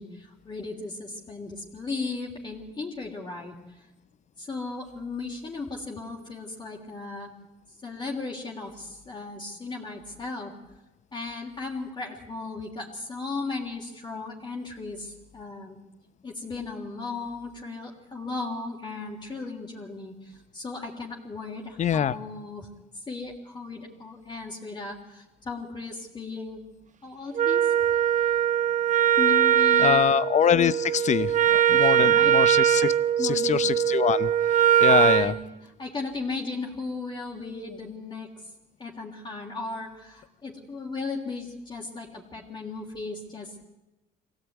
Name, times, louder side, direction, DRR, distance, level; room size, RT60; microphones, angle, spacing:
voice 1, 0.0-3.8 4.4-7.3 7.8-10.5 11.1-15.8 16.2-22.7 23.1-26.6 27.0-27.7 29.2-30.0 31.2-31.3 31.7-32.4 33.2-33.6 34.0-34.2 34.8-35.4 35.8-38.3 38.8-43.7, left 3 dB, 25° left, -2 dB, 3.4 m, -36 dB
voice 2, 21.8-22.2 29.8-32.9 33.2-35.3, left 8 dB, 45° left, 16 dB, 1.0 m, -24 dB
Wind instrument woodwind instrument, 27.4-35.3, right 10 dB, 50° right, 1.2 m, -21 dB
24.5 x 17.0 x 9.4 m, 1.0 s
cardioid pair, 110°, 17 cm